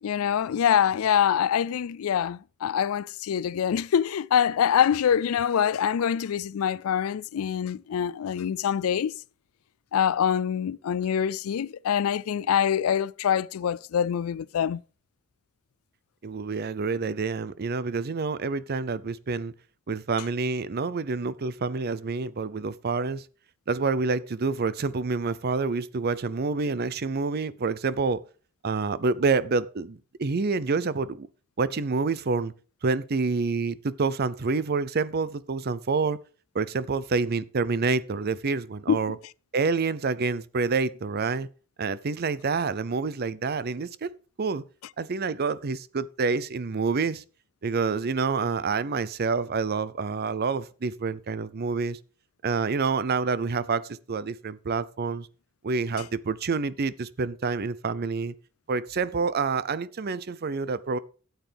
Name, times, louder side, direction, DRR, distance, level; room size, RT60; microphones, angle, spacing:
voice 1, 0.0-9.1 9.9-14.8 38.9-39.0, left 8 dB, 90° left, 0.4 m, -25 dB
voice 2, 16.2-19.5 19.9-23.2 23.7-28.2 28.6-31.3 31.6-32.5 32.8-36.2 36.5-39.2 39.5-41.5 41.8-44.1 44.4-44.6 45.0-47.2 47.6-52.0 52.4-55.3 55.6-58.3 58.7-61.0, right 4 dB, 50° right, 0.6 m, -27 dB
13.0 x 8.1 x 3.5 m
head